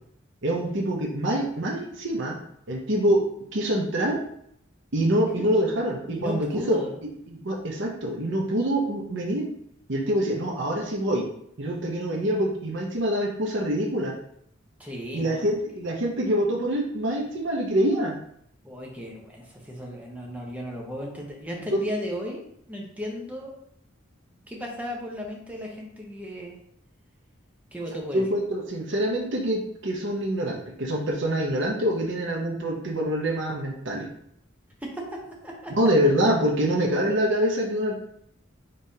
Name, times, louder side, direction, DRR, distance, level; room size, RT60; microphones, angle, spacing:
voice 1, 0.4-2.4 2.7-3.2 3.5-4.2 4.9-6.8 7.3-9.5 9.9-11.3 11.6-14.1 15.1-18.2 21.7-21.8 28.1-34.1 35.7-37.9, equal, 60° right, 0 dB, 0.8 m, -25 dB
voice 2, 6.1-7.0 14.8-15.5 18.6-22.4 22.7-23.5 24.5-26.6 27.7-28.2 34.8-35.7, equal, 5° right, -2 dB, 0.9 m, -35 dB
5.3 x 3.4 x 2.8 m, 0.71 s
head